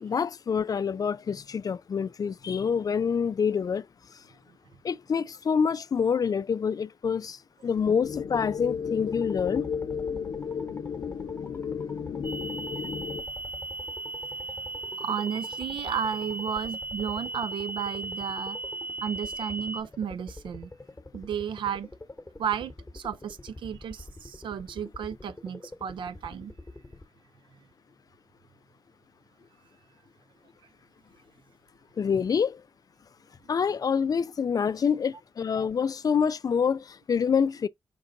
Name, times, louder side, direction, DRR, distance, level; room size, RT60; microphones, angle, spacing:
voice 1, 0.0-3.9 4.8-7.4 7.6-9.7 32.0-32.6 33.5-37.7, left 6 dB, 50° left, 0.3 m, -26 dB
sound 1, 8.0-13.2, left 6 dB, 80° left, 0.7 m, -33 dB
sound 2, 9.1-27.0, left 2 dB, 20° left, 1.1 m, -46 dB
sound 3, 12.2-19.8, right 3 dB, 25° right, 0.6 m, -37 dB
voice 2, 15.0-18.6 19.0-20.7 21.1-21.9 22.4-26.5, right 8 dB, 80° right, 0.5 m, -33 dB
5.3 x 2.5 x 3.9 m
cardioid pair, 55°, 8 cm